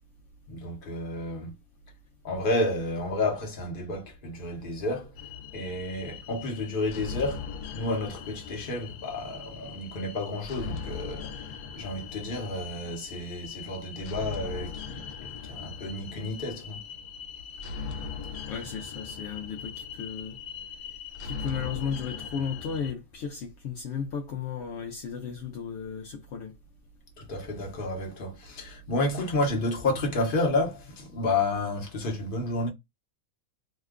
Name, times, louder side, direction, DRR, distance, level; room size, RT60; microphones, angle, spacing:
voice 1, 0.5-1.5 2.2-5.1 5.5-7.5 7.7-11.3 11.7-16.8 27.2-32.7, left 2 dB, 40° left, 1.0 m, -31 dB
sound 1, 5.2-22.9, left 6 dB, 85° left, 1.1 m, -40 dB
voice 2, 18.5-20.4 21.2-26.6, left 7 dB, 65° left, 0.7 m, -35 dB
2.9 x 2.2 x 3.5 m
omnidirectional pair, 1.5 m